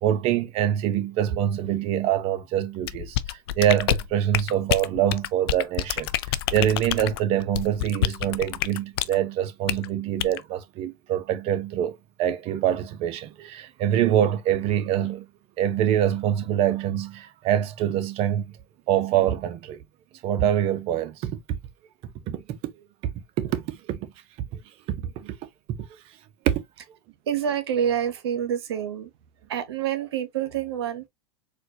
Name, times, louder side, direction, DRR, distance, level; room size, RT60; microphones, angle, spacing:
voice 1, 0.0-15.3 15.6-18.5 18.9-19.8 20.2-21.6 22.3-22.6 23.0-23.1 23.4-24.1 24.9-25.4 25.7-26.0 26.5-26.6, right 10 dB, 50° right, 0.8 m, -25 dB
sound 1, 2.8-9.2 9.7-9.9 10.2-10.4, left 13 dB, 70° left, 0.4 m, -27 dB
voice 2, 27.3-29.1 29.5-31.1, right 9 dB, 85° right, 0.8 m, -27 dB
4.3 x 2.4 x 2.8 m
hypercardioid pair, 105°, 13 cm